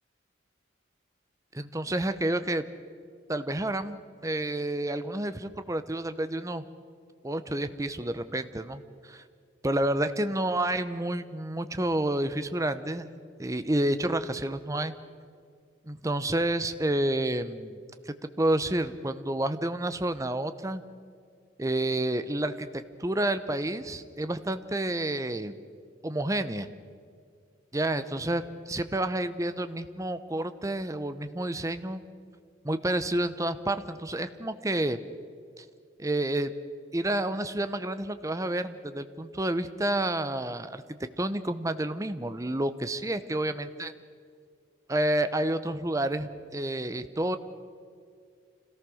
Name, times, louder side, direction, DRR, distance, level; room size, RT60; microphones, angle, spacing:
voice 1, 1.5-2.7 3.3-6.6 7.2-9.2 9.6-13.1 13.4-14.9 15.9-17.8 18.1-20.8 21.6-22.7 23.0-25.6 26.0-26.7 27.7-32.0 32.6-35.0 35.6-35.7 36.0-36.5 36.9-43.9 44.9-47.4, right 1 dB, 15° right, 11 dB, 0.7 m, -29 dB
26.5 x 17.5 x 6.4 m, 2.2 s
head